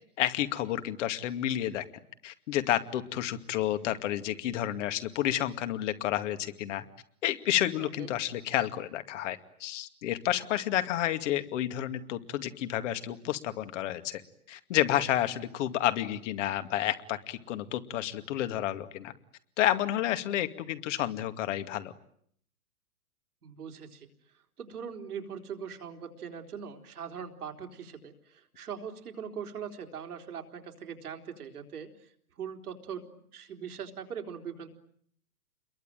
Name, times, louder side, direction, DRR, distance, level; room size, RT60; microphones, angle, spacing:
voice 1, 0.2-1.8 2.2-6.8 7.2-14.2 14.5-19.1 19.6-21.9, left 12 dB, 55° left, 9 dB, 2.4 m, -30 dB
voice 2, 7.8-8.1 23.4-24.1 24.6-32.1 32.4-33.0 33.3-34.7, right 7 dB, 75° right, 5 dB, 4.0 m, -41 dB
29.0 x 22.5 x 9.1 m, 0.67 s
hypercardioid pair, 120°, 45 cm